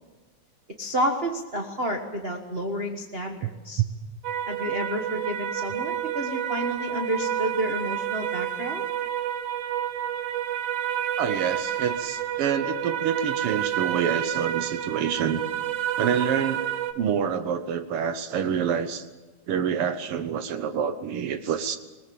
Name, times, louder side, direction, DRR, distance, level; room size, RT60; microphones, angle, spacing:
voice 1, 0.8-3.8 4.5-8.8, equal, 45° right, 2 dB, 0.7 m, -30 dB
sound 1, 4.2-16.9, right 11 dB, 90° right, 2.6 m, -29 dB
voice 2, 11.2-15.4 16.0-16.6 17.0-19.0 19.5-21.8, right 7 dB, 65° right, 10 dB, 1.5 m, -27 dB
20.5 x 20.0 x 7.7 m, 1.2 s
omnidirectional pair, 3.5 m